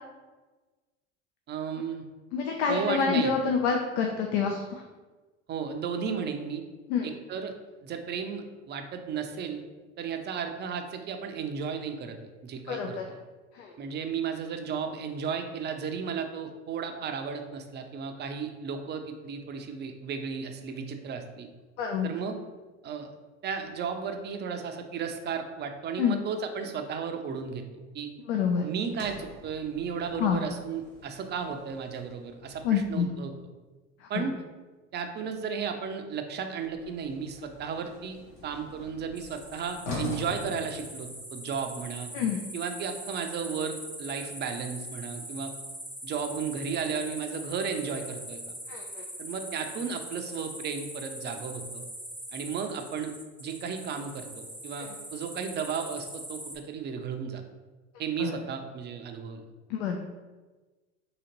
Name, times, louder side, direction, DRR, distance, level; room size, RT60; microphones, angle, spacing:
voice 1, 1.5-2.0 2.7-3.4 5.5-6.6 7.0-7.5 7.8-9.6 10.0-12.2 12.4-13.0 13.8-21.5 22.0-22.4 22.8-23.1 23.4-27.6 27.9-28.1 28.6-33.3 34.1-34.4 34.9-38.2 38.4-42.1 42.5-45.5 46.0-48.5 49.2-51.8 52.3-53.1 53.4-57.4 58.0-59.4, right 6 dB, 30° right, 5 dB, 0.5 m, -34 dB
voice 2, 2.3-4.8 6.9-7.1 12.7-13.0 13.5-13.7 21.8-22.1 26.0-26.2 28.3-28.7 30.2-30.4 32.6-33.1 34.1-34.2 42.1-42.4 48.7-49.0 54.8-54.9 58.2-58.3 59.7-60.0, left 6 dB, 70° left, 2 dB, 0.5 m, -27 dB
Sliding door, 28.8-33.1 36.6-41.5, left 3 dB, 85° left, 0.9 m, -43 dB
sound 1, 39.1-56.6, equal, 5° left, 0.7 m, -42 dB
3.9 x 2.8 x 2.9 m, 1.3 s
hypercardioid pair, 75°, 36 cm